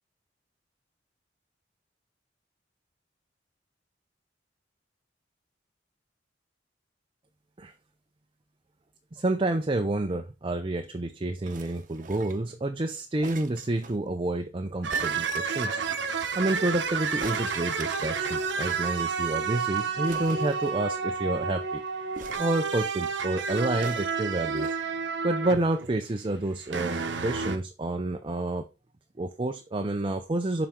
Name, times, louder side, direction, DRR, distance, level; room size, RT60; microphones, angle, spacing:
voice 1, 9.1-15.8 16.3-21.8 22.4-24.8 25.2-28.7 29.2-30.7, right 2 dB, 30° right, 7 dB, 0.5 m, -29 dB
sound 1, 11.4-12.5 13.2-14.0 14.9-16.0 17.2-18.9 19.2-19.3 19.5-19.6 20.0-21.2 22.1-23.1 23.8-24.8 25.5-25.6, right 4 dB, 45° right, 0.9 m, -44 dB
sound 2, 14.8-26.0 26.4-27.6, right 5 dB, 75° right, 0.9 m, -30 dB
7.4 x 5.0 x 3.6 m, 0.28 s
head